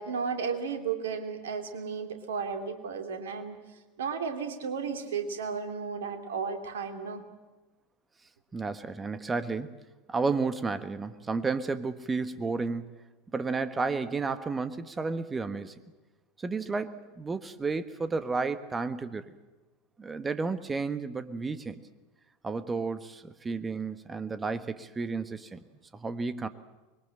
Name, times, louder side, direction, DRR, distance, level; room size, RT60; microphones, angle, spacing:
voice 1, 0.0-3.6 4.0-7.2, right 6 dB, 65° right, 6 dB, 2.7 m, -34 dB
voice 2, 8.5-9.7 10.1-12.9 13.3-15.7 16.4-19.3 20.0-21.8 22.4-25.6 25.9-26.5, right 4 dB, 15° right, 12 dB, 1.3 m, -32 dB
25.0 x 22.0 x 7.7 m, 1.2 s
figure-of-eight pair, 80°, 0 cm